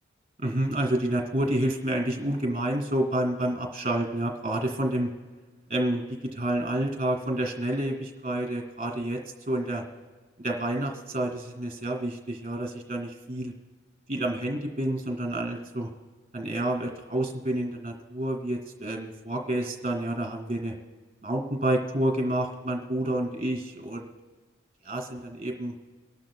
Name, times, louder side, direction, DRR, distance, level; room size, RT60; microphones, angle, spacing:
voice 1, 0.4-5.1 5.7-6.0 6.3-9.2 9.5-9.8 10.4-13.5 14.1-15.9 16.3-20.7 21.2-24.1 24.8-25.7, right 1 dB, 35° right, 2 dB, 2.1 m, -29 dB
24.5 x 12.0 x 2.3 m, 1.3 s
head